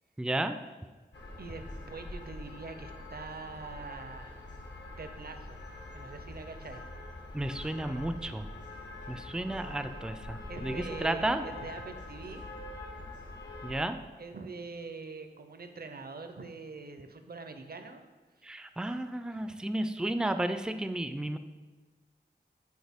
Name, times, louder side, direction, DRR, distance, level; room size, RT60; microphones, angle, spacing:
voice 1, 0.2-0.6 7.3-8.5 9.1-11.5 13.6-14.0 18.4-21.4, right 1 dB, 5° right, 9 dB, 0.3 m, -32 dB
sound 1, 1.1-13.8, left 2 dB, 75° left, 0.9 m, -44 dB
voice 2, 1.4-4.6 5.0-5.6 5.9-6.9 9.0-9.3 10.5-12.4 14.2-18.0 18.4-18.5 19.3-19.7, right 4 dB, 60° right, 7 dB, 0.5 m, -44 dB
6.4 x 4.2 x 3.5 m, 1.3 s
wide cardioid pair, 40°, 18 cm